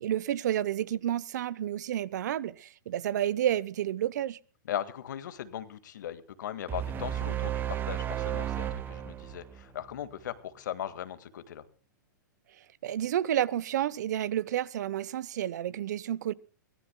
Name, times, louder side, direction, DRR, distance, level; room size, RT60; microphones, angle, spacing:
voice 1, 0.0-4.4 12.8-16.3, right 11 dB, 65° right, 0.8 m, -30 dB
voice 2, 4.7-11.6, left 10 dB, 70° left, 1.8 m, -38 dB
sound 1, 6.7-10.0, right 11 dB, 20° right, 0.9 m, -33 dB
24.0 x 17.5 x 2.2 m
hypercardioid pair, 135°, 10 cm